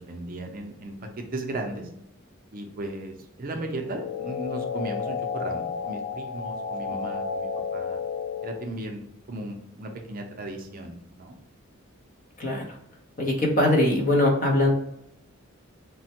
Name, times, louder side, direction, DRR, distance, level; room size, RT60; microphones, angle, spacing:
voice 1, 0.0-1.9 2.5-8.0 8.4-11.4, right 2 dB, 45° right, 3 dB, 0.4 m, -36 dB
sound 1, 3.8-8.8, left 6 dB, 80° left, 0.4 m, -32 dB
voice 2, 13.2-14.7, left 1 dB, 40° left, -1 dB, 0.8 m, -21 dB
3.2 x 2.1 x 2.8 m, 0.80 s
head